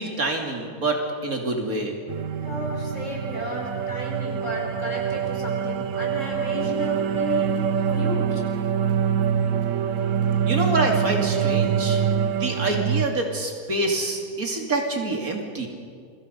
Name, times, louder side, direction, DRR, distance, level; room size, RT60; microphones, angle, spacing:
voice 1, 0.0-1.9 10.5-12.0 12.4-15.7, right 2 dB, 80° right, 1 dB, 3.3 m, -26 dB
sound 1, 2.1-13.1, right 7 dB, 65° right, 1.1 m, -25 dB
voice 2, 2.4-8.4, left 2 dB, 60° left, -1 dB, 5.1 m, -34 dB
28.0 x 23.5 x 5.4 m, 2.2 s
omnidirectional pair, 1.5 m